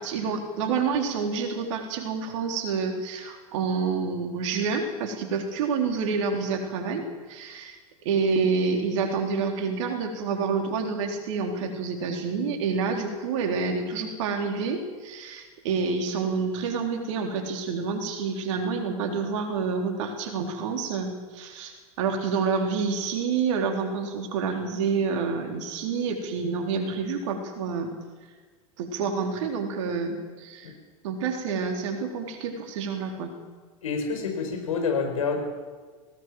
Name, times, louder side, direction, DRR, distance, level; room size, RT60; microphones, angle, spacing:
voice 1, 0.0-7.0 7.3-7.8 8.0-27.9 28.8-30.7 31.0-33.3, right 5 dB, 55° right, 4 dB, 3.8 m, -28 dB
voice 2, 33.8-35.4, left 5 dB, 65° left, 3 dB, 5.2 m, -27 dB
20.0 x 18.0 x 7.8 m, 1.4 s
figure-of-eight pair, 85°, 19 cm